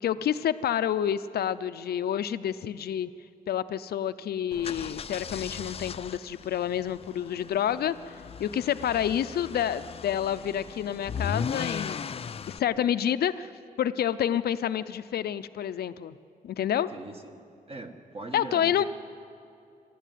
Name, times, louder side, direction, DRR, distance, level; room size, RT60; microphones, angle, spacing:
voice 1, 0.0-3.1 3.5-13.5 13.8-16.2 16.4-16.9 18.3-18.8, left 10 dB, 90° left, 13 dB, 0.6 m, -29 dB
sound 1, 4.5-12.6, left 6 dB, 40° left, 0.4 m, -37 dB
voice 2, 16.9-18.8, right 2 dB, 40° right, 5 dB, 1.6 m, -41 dB
28.0 x 12.0 x 9.3 m, 2.5 s
wide cardioid pair, 145°, 16 cm